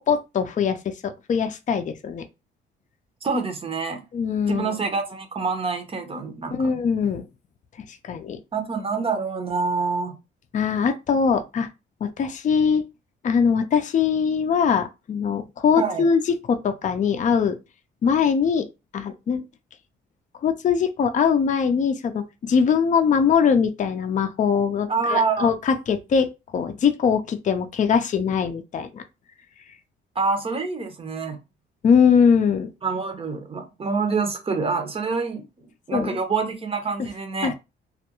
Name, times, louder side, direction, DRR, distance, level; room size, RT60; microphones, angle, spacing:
voice 1, 0.0-2.2 4.1-4.7 6.5-7.2 8.0-8.4 10.5-11.7 12.0-12.8 13.2-16.2 16.5-17.6 18.0-18.7 18.9-19.4 20.4-26.3 26.5-29.0 31.8-32.7 35.9-36.2 37.4-37.5, left 6 dB, 40° left, 0.5 m, -21 dB
voice 2, 3.2-4.0 4.5-6.7 8.5-10.1 15.8-16.0 24.9-25.5 30.2-31.4 32.8-35.4 35.9-37.5, right 4 dB, 30° right, 0.7 m, -26 dB
2.4 x 2.2 x 2.9 m
cardioid pair, 90°, 20 cm